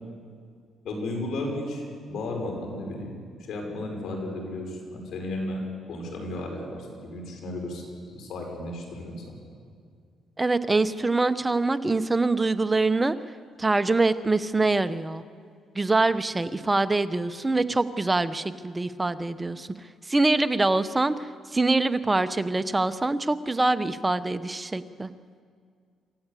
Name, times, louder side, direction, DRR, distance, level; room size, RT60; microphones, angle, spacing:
voice 1, 0.8-1.8 2.1-5.6 5.9-7.8 8.1-9.4, left 1 dB, 70° left, 1 dB, 5.7 m, -34 dB
voice 2, 10.4-13.1 13.6-15.2 15.7-19.7 20.1-25.1, right 2 dB, 20° right, 12 dB, 0.9 m, -24 dB
27.0 x 14.0 x 8.4 m, 2.1 s
cardioid pair, 90°, 0 cm